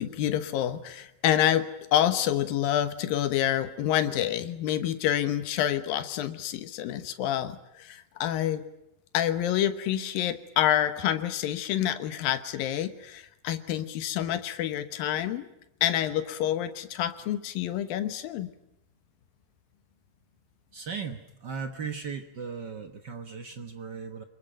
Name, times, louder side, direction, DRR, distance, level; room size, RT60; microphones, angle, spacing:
voice 1, 0.0-8.6 9.1-15.5 15.8-18.5, left 11 dB, 85° left, 10 dB, 3.0 m, -28 dB
voice 2, 20.7-24.2, right 6 dB, 85° right, 6 dB, 0.9 m, -37 dB
26.0 x 21.5 x 9.1 m, 0.85 s
omnidirectional pair, 4.0 m